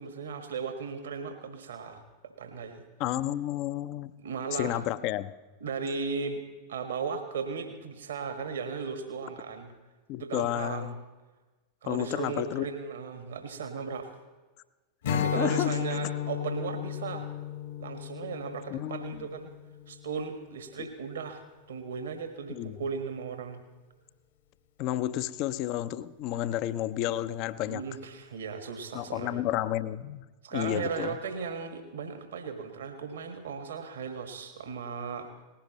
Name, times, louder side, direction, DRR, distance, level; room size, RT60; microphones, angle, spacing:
voice 1, 0.0-2.8 3.9-4.9 5.6-6.4 6.7-9.7 10.2-11.0 11.8-14.1 15.1-17.3 17.8-19.5 19.9-21.4 21.7-23.6 27.6-29.4 30.4-35.4, right 5 dB, 65° right, 6 dB, 1.6 m, -36 dB
voice 2, 3.0-4.1 4.6-5.3 10.1-10.9 11.9-12.6 15.1-15.8 18.7-19.4 22.5-22.8 24.8-27.8 28.9-30.3 30.5-31.2, left 13 dB, 40° left, 15 dB, 0.5 m, -31 dB
Strum, 15.0-20.5, left 9 dB, 65° left, 1.4 m, -34 dB
19.0 x 16.0 x 3.1 m, 1.2 s
figure-of-eight pair, 90°, 0 cm